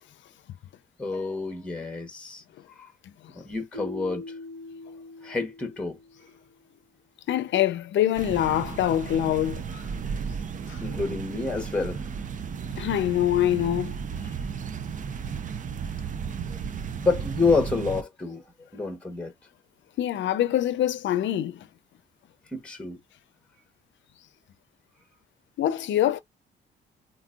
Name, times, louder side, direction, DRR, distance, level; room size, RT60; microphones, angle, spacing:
voice 1, 1.0-2.9 3.3-4.3 5.2-6.0 10.8-12.0 14.2-14.3 16.5-16.6 17.0-19.3 22.5-23.0, left 4 dB, 5° left, 1.0 m, -28 dB
Keyboard (musical), 3.7-6.6, left 2 dB, 55° right, 1.0 m, -42 dB
voice 2, 7.3-9.8 10.7-10.8 12.8-14.0 20.0-21.6 25.6-26.2, left 12 dB, 70° left, 0.6 m, -24 dB
sound 1, 8.1-18.0, right 6 dB, 40° right, 0.5 m, -34 dB
3.8 x 2.6 x 2.3 m
cardioid pair, 90°, 20 cm